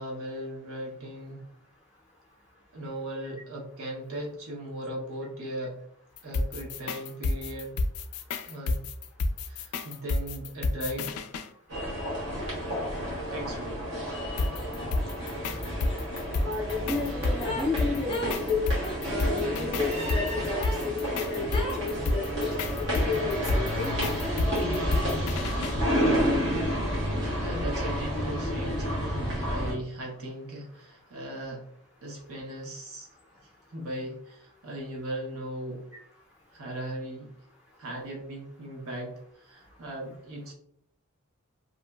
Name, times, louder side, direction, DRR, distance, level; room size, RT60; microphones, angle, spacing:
voice 1, 0.0-1.5 2.7-5.8 6.2-7.8 8.4-8.9 9.5-11.1 13.3-13.8 27.4-31.7 32.0-33.1 33.7-35.9 36.5-37.3 37.8-40.5, right 1 dB, 80° right, -1 dB, 0.7 m, -38 dB
sound 1, 6.2-11.5 14.4-25.7, left 2 dB, 90° left, 0.3 m, -30 dB
sound 2, 11.7-29.7, equal, 55° right, 1.1 m, -30 dB
sound 3, 12.6-12.8 13.0-17.7 18.0-19.5 20.5-20.9 21.5-21.9 22.3-23.1 24.2-24.5 24.9-26.7 27.1-28.5, left 1 dB, 20° left, 0.7 m, -40 dB
voice 2, 16.4-18.6 19.1-22.5 23.0-23.9, left 4 dB, 5° right, -5 dB, 0.4 m, -32 dB
2.8 x 2.5 x 2.2 m, 0.67 s
head